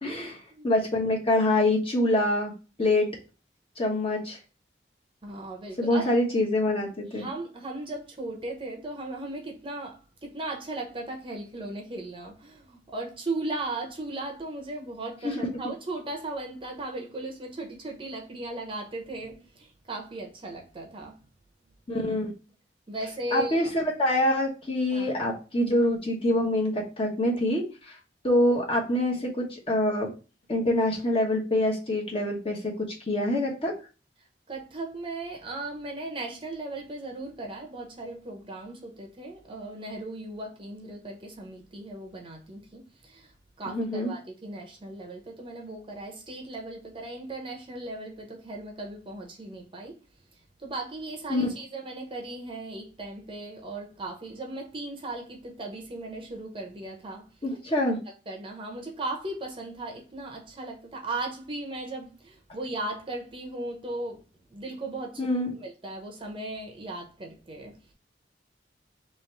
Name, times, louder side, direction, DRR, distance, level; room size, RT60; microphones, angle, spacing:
voice 1, 0.0-0.4 0.6-3.2 3.8-4.4 5.8-7.3 15.2-15.4 21.9-22.3 23.3-28.0 28.2-30.1 30.5-33.8 43.6-44.1 51.3-51.5 57.4-58.0 65.2-65.5, left 1 dB, 30° left, 1.1 m, -25 dB
voice 2, 5.2-6.2 7.1-21.2 22.9-23.7 24.9-25.3 34.5-43.3 43.6-50.0 50.6-57.3 58.3-64.2 64.5-65.3 65.5-67.9, right 2 dB, 30° right, 0.8 m, -37 dB
3.1 x 3.0 x 4.4 m
head